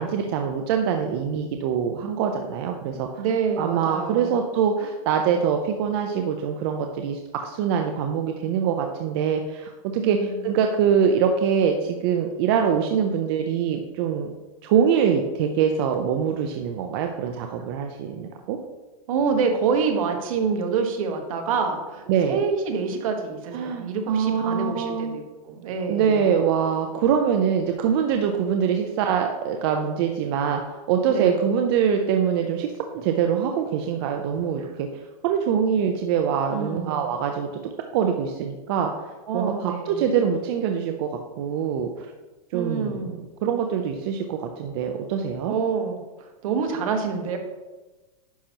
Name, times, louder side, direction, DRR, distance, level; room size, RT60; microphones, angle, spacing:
voice 1, 0.0-3.2 3.6-14.3 14.6-18.6 22.1-22.4 23.5-25.1 25.9-34.9 35.2-37.5 37.9-38.9 39.3-41.1 41.4-42.1 42.5-45.5, right 7 dB, 40° right, 4 dB, 0.6 m, -24 dB
voice 2, 2.9-4.3 10.0-10.4 19.1-26.2 31.1-31.4 36.5-37.1 39.3-40.0 42.5-43.2 45.5-46.0 46.4-47.4, right 5 dB, 65° right, 4 dB, 1.4 m, -27 dB
10.0 x 5.8 x 2.9 m, 1.2 s
supercardioid pair, 160°, 19 cm